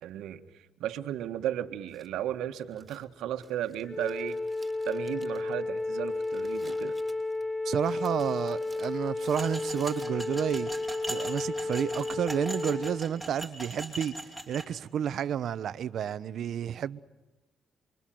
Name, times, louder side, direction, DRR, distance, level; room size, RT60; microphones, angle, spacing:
voice 1, 0.0-4.4 4.8-7.0, right 11 dB, 85° right, 1.6 m, -35 dB
Crumpling crinkling, 1.9-10.5, right 3 dB, 20° right, 3.5 m, -56 dB
Wind instrument woodwind instrument, 3.9-13.0, left 2 dB, 40° left, 1.8 m, -33 dB
voice 2, 7.6-10.7 11.1-17.0, right 9 dB, 65° right, 0.9 m, -31 dB
sound 1, 9.3-14.7, right 1 dB, ahead, 4.9 m, -40 dB
28.5 x 23.5 x 7.8 m
cardioid pair, 90°, 0 cm